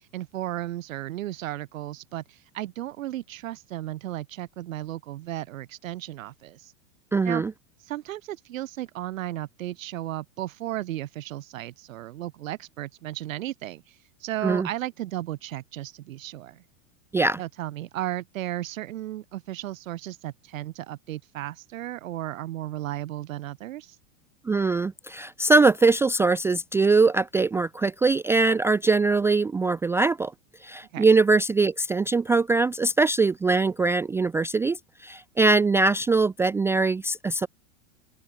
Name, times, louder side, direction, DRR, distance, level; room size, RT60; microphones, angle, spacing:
voice 1, 0.0-6.7 7.2-7.4 7.8-16.6 17.4-24.0 30.9-31.0, right 14 dB, 85° right, 1.3 m, -34 dB
voice 2, 7.1-7.5 14.4-14.7 17.1-17.4 24.4-30.3 30.6-37.5, right 3 dB, 5° right, 0.5 m, -22 dB
open air
supercardioid pair, 145°, 39 cm